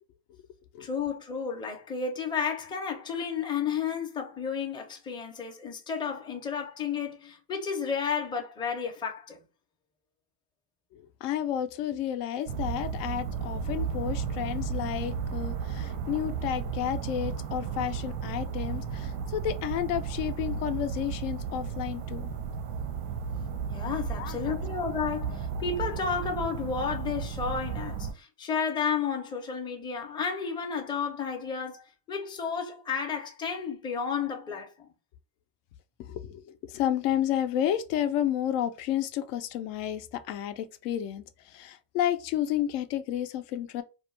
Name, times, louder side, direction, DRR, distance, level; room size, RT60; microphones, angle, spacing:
voice 1, 0.8-9.4 23.7-31.8 32.1-34.9, left 6 dB, 10° left, 0.5 m, -32 dB
voice 2, 10.9-22.3 24.1-24.5 36.0-43.8, left 11 dB, 75° left, 0.5 m, -31 dB
sound 1, 12.5-28.1, right 6 dB, 85° right, 0.7 m, -34 dB
2.4 x 2.1 x 3.0 m
supercardioid pair, 95°, 49 cm